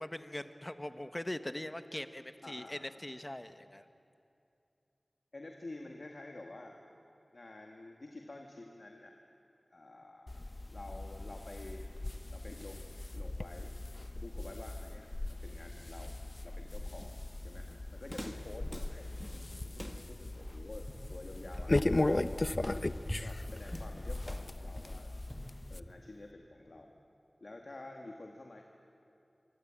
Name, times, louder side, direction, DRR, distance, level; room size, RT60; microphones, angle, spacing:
voice 1, 0.0-3.8, left 1 dB, 25° left, 9 dB, 1.4 m, -41 dB
voice 2, 2.4-2.8 5.3-6.8 7.3-9.1 9.7-10.4 10.7-11.8 12.3-13.7 14.1-16.1 16.4-17.1 17.4-19.1 19.7-20.8 21.1-22.5 23.2-25.1 25.7-27.0 27.4-28.6, left 2 dB, 70° left, 2 dB, 2.0 m, -49 dB
sound 1, 10.3-25.8, left 2 dB, 45° left, 0.7 m, -38 dB
Walk footsteps, 17.0-26.3, equal, 10° left, 1.9 m, -45 dB
26.0 x 24.5 x 8.9 m, 2.6 s
wide cardioid pair, 45°, 0 cm